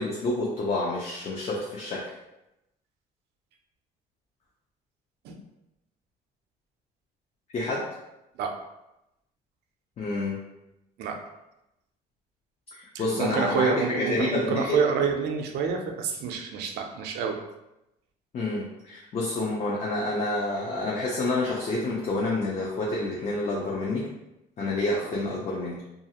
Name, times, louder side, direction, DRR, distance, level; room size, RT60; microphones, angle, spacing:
voice 1, 0.0-2.1 7.5-7.9 10.0-10.4 12.7-14.8 18.3-24.1 24.6-25.8, left 2 dB, 40° left, -4 dB, 0.5 m, -28 dB
voice 2, 12.9-17.4, right 6 dB, 80° right, 4 dB, 0.5 m, -27 dB
2.5 x 2.4 x 2.8 m, 0.91 s
cardioid pair, 110°, 17 cm